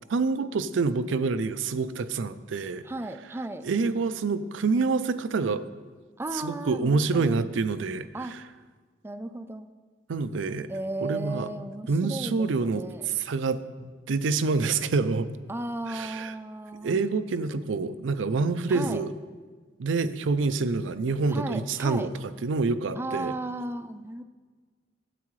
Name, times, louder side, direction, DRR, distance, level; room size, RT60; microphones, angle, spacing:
voice 1, 0.1-2.8 3.6-5.6 6.4-8.1 10.1-10.7 11.0-11.5 11.9-12.8 13.2-15.3 15.9-16.3 16.8-19.1 19.8-22.1 22.4-23.3, right 4 dB, 80° right, 13 dB, 0.4 m, -27 dB
voice 2, 2.8-3.7 6.2-7.4 8.1-8.4 9.0-9.7 10.7-13.1 15.5-17.1 18.7-19.0 21.3-22.1 23.0-24.2, right 2 dB, 15° right, 10 dB, 0.4 m, -35 dB
12.0 x 8.4 x 3.1 m, 1.4 s
head